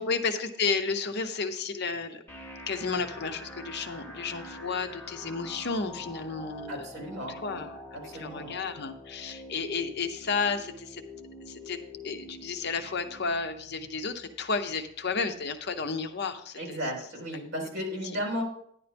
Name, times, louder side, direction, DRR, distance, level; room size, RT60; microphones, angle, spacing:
voice 1, 0.1-2.2 2.7-6.9 7.3-7.8 8.2-11.0 11.4-11.8 12.0-16.8, left 4 dB, 55° left, 7 dB, 0.8 m, -32 dB
sound 1, 2.3-16.2, left 1 dB, 10° left, 1.8 m, -46 dB
voice 2, 6.7-8.6 16.6-18.4, equal, 55° right, -2 dB, 3.9 m, -35 dB
10.5 x 10.0 x 3.5 m, 0.68 s
head